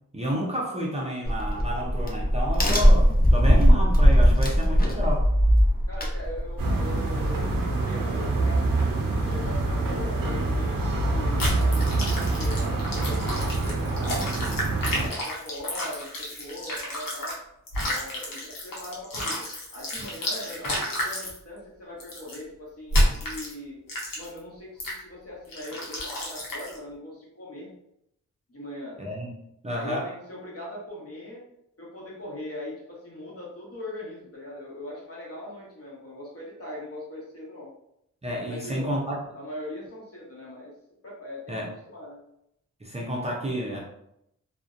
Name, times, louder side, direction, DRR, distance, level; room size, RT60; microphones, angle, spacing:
voice 1, 0.1-5.3 29.0-29.3 29.6-30.1 38.2-39.2 41.5-41.7 42.8-43.8, equal, 20° right, -3 dB, 0.5 m, -30 dB
Crack, 1.2-6.7, equal, 30° left, 0.6 m, -19 dB
voice 2, 5.9-10.8 11.1-14.3 14.9-17.4 17.8-19.5 19.7-23.8 24.2-27.7 28.5-29.0 29.7-31.4 31.8-37.7 38.5-38.9 39.3-40.7 41.0-41.6 41.9-42.2, left 1 dB, 45° left, -4 dB, 1.0 m, -40 dB
sound 1, 6.6-15.1, right 2 dB, 85° right, 0.5 m, -26 dB
sound 2, 11.4-17.4 17.7-21.4 22.0-22.4 22.9-23.5 23.9-24.4 24.8-25.0 25.5-26.8, left 1 dB, 85° left, 0.8 m, -30 dB
2.6 x 2.1 x 2.4 m, 0.79 s
cardioid pair, 65°, 33 cm